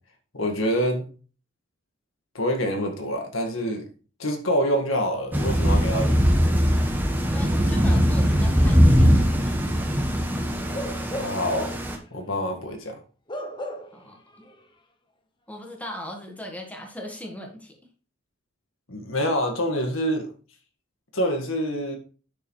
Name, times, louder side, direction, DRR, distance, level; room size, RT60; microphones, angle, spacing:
voice 1, 0.3-1.0 2.3-3.9 4.2-6.4 11.2-11.8 12.1-12.9 18.9-20.3 21.1-22.0, equal, 75° left, 3 dB, 1.8 m, -26 dB
Thunder / Rain, 5.3-12.0, equal, 10° right, 1.2 m, -21 dB
voice 2, 7.3-9.6 13.9-14.2 15.5-17.8, equal, 5° left, 1 dB, 1.6 m, -38 dB
Bark / Livestock farm animals working animals, 10.7-11.6 12.0-12.2 13.3-14.1 14.4-14.6, equal, 20° left, 0.8 m, -35 dB
9.2 x 6.8 x 3.2 m, 0.38 s
head